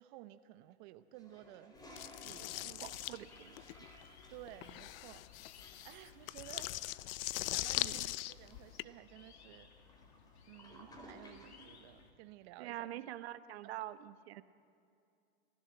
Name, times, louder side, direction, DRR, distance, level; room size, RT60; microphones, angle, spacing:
voice 1, 0.0-1.7 2.2-2.7 4.3-7.1 7.4-9.7 10.5-12.9, right 14 dB, 45° right, 11 dB, 0.8 m, -55 dB
Toilet flush, 1.1-11.8, equal, 10° left, 3.5 m, -59 dB
sound 1, 2.0-8.8, left 16 dB, 60° left, 0.6 m, -41 dB
sound 2, 2.2-12.1, left 6 dB, 80° left, 2.6 m, -61 dB
voice 2, 2.6-3.6 7.8-8.1 12.6-14.4, right 13 dB, 70° right, 14 dB, 1.0 m, -45 dB
28.5 x 15.5 x 7.9 m, 2.5 s
supercardioid pair, 140°, 33 cm